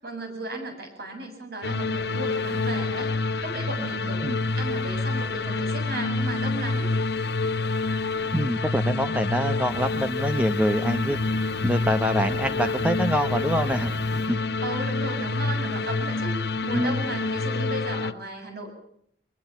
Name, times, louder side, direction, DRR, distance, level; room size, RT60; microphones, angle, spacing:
voice 1, 0.0-3.1 3.4-4.2 4.6-6.9 12.6-13.0 14.6-18.7, right 1 dB, 55° right, 4 dB, 7.7 m, -35 dB
sound 1, 1.6-18.1, left 3 dB, 60° left, 0.9 m, -27 dB
voice 2, 8.3-11.2 11.6-14.4 16.7-17.0, equal, 5° right, 8 dB, 0.8 m, -25 dB
Fire, 9.7-14.3, right 1 dB, 75° right, 6.4 m, -44 dB
23.0 x 22.0 x 7.2 m, 0.67 s
head